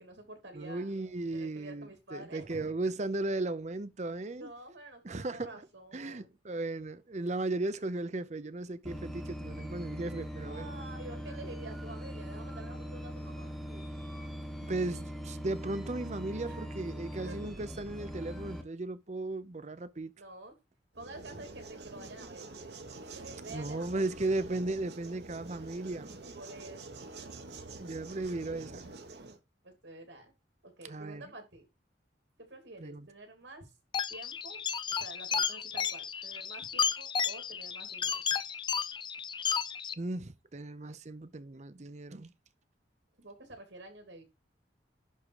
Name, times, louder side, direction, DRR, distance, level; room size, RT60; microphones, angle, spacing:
voice 1, 0.0-0.9 1.3-2.7 4.4-6.3 10.4-13.6 16.4-16.6 16.9-17.5 20.2-20.5 20.9-22.5 23.0-24.1 26.3-27.3 29.6-30.3 30.6-31.7 32.4-33.7 34.1-38.2 43.2-44.2, right 2 dB, 85° right, 3.0 m, -49 dB
voice 2, 0.5-4.5 5.0-5.5 5.9-10.7 13.7-13.9 14.7-20.1 23.5-26.2 27.8-28.9 30.8-31.3 32.8-33.1 40.0-42.3, right 2 dB, 40° right, 0.6 m, -36 dB
sound 1, 8.8-18.6, equal, ahead, 1.1 m, -41 dB
sound 2, 20.9-29.4, right 3 dB, 65° right, 1.1 m, -47 dB
sound 3, 33.9-39.9, left 7 dB, 25° left, 0.4 m, -33 dB
11.0 x 3.7 x 4.7 m
head